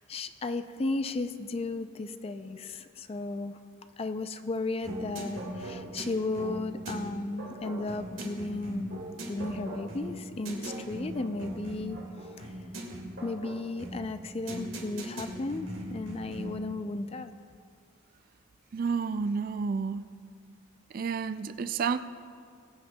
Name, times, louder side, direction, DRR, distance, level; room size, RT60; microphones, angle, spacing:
voice 1, 0.0-3.6 4.0-12.0 12.4-12.5 13.2-17.3, left 2 dB, 30° left, 0.4 m, -34 dB
sound 1, 4.8-16.7, right 1 dB, 70° right, 2.0 m, -40 dB
voice 2, 18.7-20.0 20.9-22.0, right 5 dB, 45° right, 0.3 m, -30 dB
21.0 x 9.4 x 2.2 m
head